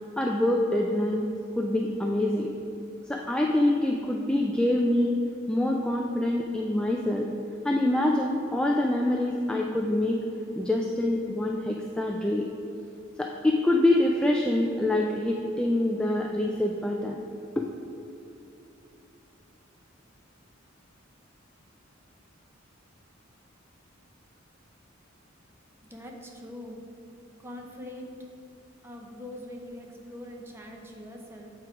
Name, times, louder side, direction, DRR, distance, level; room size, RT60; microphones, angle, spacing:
voice 1, 0.2-1.3 1.6-2.5 3.1-5.2 5.5-7.3 7.6-10.2 10.6-12.4 13.2-17.2 17.6-17.7, left 1 dB, 5° left, 0 dB, 0.3 m, -25 dB
voice 2, 25.9-26.8 27.4-28.1 28.8-31.5, left 1 dB, 10° right, 1 dB, 0.7 m, -42 dB
7.9 x 4.5 x 4.8 m, 2.9 s
head